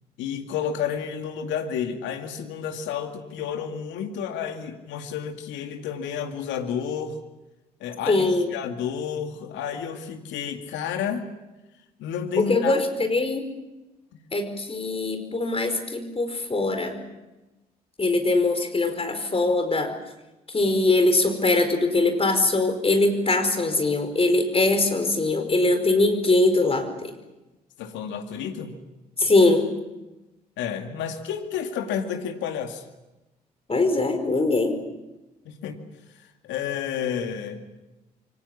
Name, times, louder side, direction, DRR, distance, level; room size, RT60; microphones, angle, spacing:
voice 1, 0.2-7.2 7.8-11.3 12.0-12.8 27.8-28.8 30.6-32.8 35.5-35.8 36.4-37.6, left 8 dB, 70° left, 6 dB, 2.3 m, -30 dB
voice 2, 8.1-8.5 12.4-13.5 14.3-17.0 18.0-19.9 20.5-27.1 29.2-29.8 33.7-34.8, left 2 dB, 30° left, 7 dB, 4.8 m, -22 dB
27.0 x 24.5 x 7.3 m, 1.0 s
hypercardioid pair, 40°, 20 cm